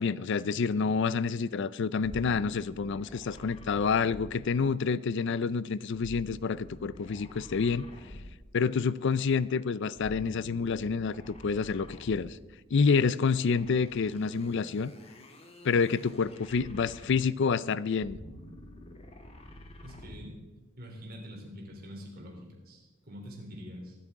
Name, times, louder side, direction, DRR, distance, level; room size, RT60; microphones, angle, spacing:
voice 1, 0.0-7.8 8.5-12.4 12.7-14.9 15.6-18.2, left 5 dB, 65° left, 0.4 m, -28 dB
sound 1, 2.0-5.0 5.9-8.6 9.9-12.5 13.5-17.5 17.9-20.4, left 1 dB, 30° left, 1.5 m, -48 dB
voice 2, 19.8-20.4 20.8-23.9, equal, 50° right, 3.4 m, -45 dB
23.5 x 8.4 x 3.7 m
head